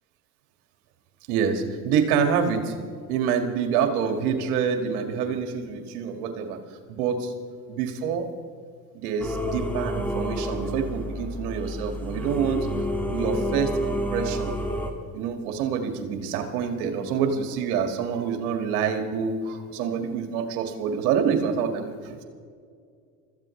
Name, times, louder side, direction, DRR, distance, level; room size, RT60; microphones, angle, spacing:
voice 1, 1.3-2.7 3.1-6.6 6.9-7.3 7.7-8.3 8.9-12.7 13.1-14.5 15.1-22.2, right 7 dB, 70° right, 5 dB, 2.1 m, -27 dB
Singing / Musical instrument, 9.2-14.9, equal, 5° left, 2.2 m, -29 dB
24.5 x 14.5 x 3.3 m, 2.2 s
hypercardioid pair, 85°, 46 cm